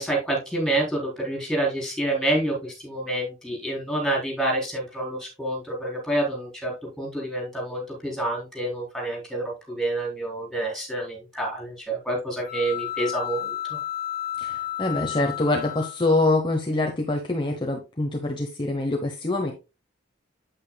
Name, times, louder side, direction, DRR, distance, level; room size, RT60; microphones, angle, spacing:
voice 1, 0.0-6.7 7.0-13.8, right 1 dB, ahead, -2 dB, 4.5 m, -28 dB
sound 1, 12.4-16.5, left 12 dB, 50° left, 2.0 m, -33 dB
voice 2, 14.4-19.5, left 2 dB, 25° left, 3 dB, 1.0 m, -25 dB
8.8 x 8.5 x 2.3 m, 0.28 s
head